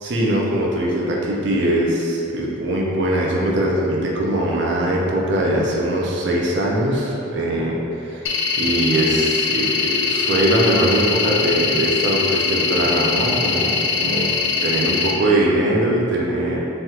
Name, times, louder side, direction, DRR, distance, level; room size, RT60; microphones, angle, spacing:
voice 1, 0.0-8.3 8.6-14.3 14.6-16.6, right 1 dB, 55° right, -2 dB, 0.4 m, -21 dB
sound 1, 8.3-15.1, left 4 dB, 65° left, 0.3 m, -22 dB
3.2 x 2.3 x 2.8 m, 2.8 s
head